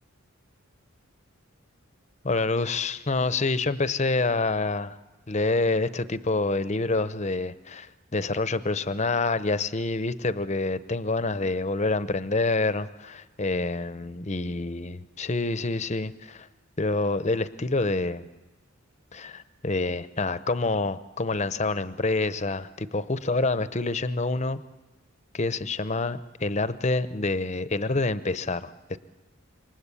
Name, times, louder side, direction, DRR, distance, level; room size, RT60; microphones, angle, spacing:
voice 1, 2.2-5.0 5.3-16.5 16.8-18.3 19.1-24.6 25.3-29.0, left 3 dB, 35° left, 14 dB, 0.8 m, -27 dB
27.0 x 23.5 x 8.5 m, 1.2 s
head